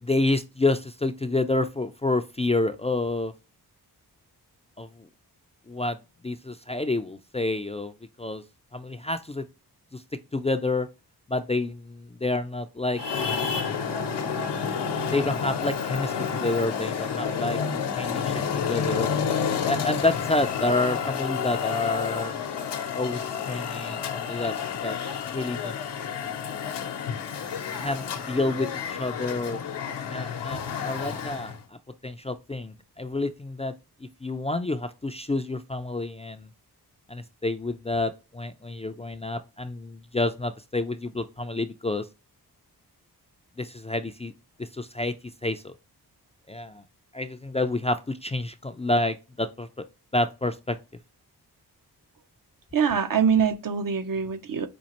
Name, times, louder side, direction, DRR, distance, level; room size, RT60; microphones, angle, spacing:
voice 1, 0.0-3.3 4.8-5.1 5.7-6.0 6.2-7.9 8.2-8.4 8.7-9.4 9.9-10.0 10.3-10.9 11.3-13.0 15.1-19.1 19.6-22.4 22.9-24.5 24.8-25.0 25.3-25.7 27.8-29.6 30.1-31.5 32.0-33.7 34.2-36.5 37.1-42.1 43.6-44.3 44.6-45.1 45.4-45.7 46.5-46.8 47.1-49.7 50.1-50.8, left 2 dB, 15° left, 0.4 m, -28 dB
Traffic noise roadway noise, 12.9-31.6, left 7 dB, 85° left, 0.8 m, -30 dB
voice 2, 52.7-54.7, right 7 dB, 55° right, 0.6 m, -24 dB
5.2 x 2.4 x 2.9 m
cardioid pair, 60°, 40 cm